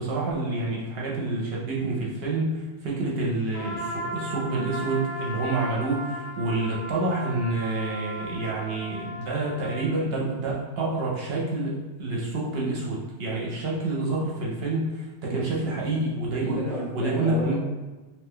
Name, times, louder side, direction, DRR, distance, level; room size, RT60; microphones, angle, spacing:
voice 1, 0.0-16.6 16.9-17.6, right 2 dB, 60° right, -3 dB, 0.8 m, -28 dB
Trumpet, 3.5-10.0, equal, 90° left, 0.9 m, -36 dB
voice 2, 16.4-17.6, equal, 50° left, -4 dB, 0.7 m, -32 dB
2.7 x 2.2 x 3.5 m, 1.2 s
omnidirectional pair, 1.2 m